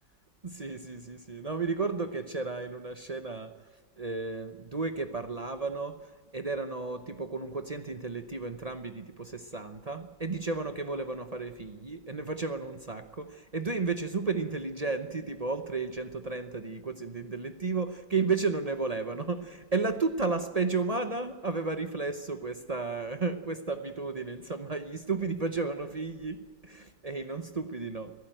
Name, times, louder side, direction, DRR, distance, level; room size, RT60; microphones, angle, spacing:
voice 1, 0.4-3.5 4.0-28.1, right 4 dB, 40° right, 8 dB, 0.5 m, -33 dB
25.5 x 15.5 x 9.1 m, 1.4 s
omnidirectional pair, 1.9 m